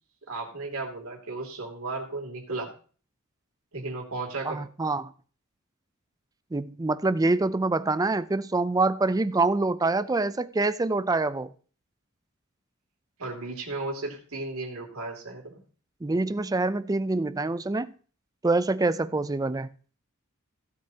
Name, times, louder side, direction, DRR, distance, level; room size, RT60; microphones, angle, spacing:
voice 1, 0.3-2.7 3.7-4.6 13.2-15.6, right 3 dB, 85° right, 2.7 m, -35 dB
voice 2, 4.5-5.1 6.5-11.5 16.0-17.9 18.4-19.7, right 3 dB, 15° right, 0.4 m, -25 dB
16.0 x 8.2 x 2.8 m
head